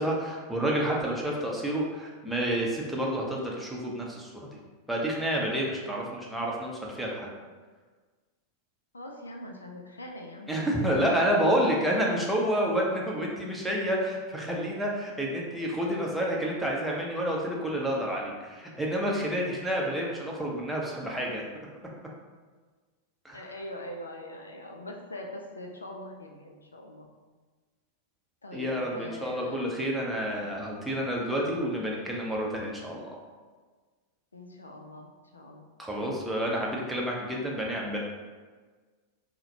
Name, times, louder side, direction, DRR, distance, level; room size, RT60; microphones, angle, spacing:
voice 1, 0.0-4.5 4.9-7.3 10.5-21.4 23.2-23.4 28.5-33.1 35.8-38.0, equal, 5° right, -3 dB, 0.6 m, -29 dB
voice 2, 8.9-11.7 15.3-15.4 15.7-16.1 16.6-16.7 23.3-27.1 28.4-29.7 34.3-35.7, left 1 dB, 75° left, 1 dB, 0.3 m, -43 dB
3.9 x 2.1 x 2.7 m, 1.4 s
figure-of-eight pair, 90°, 0 cm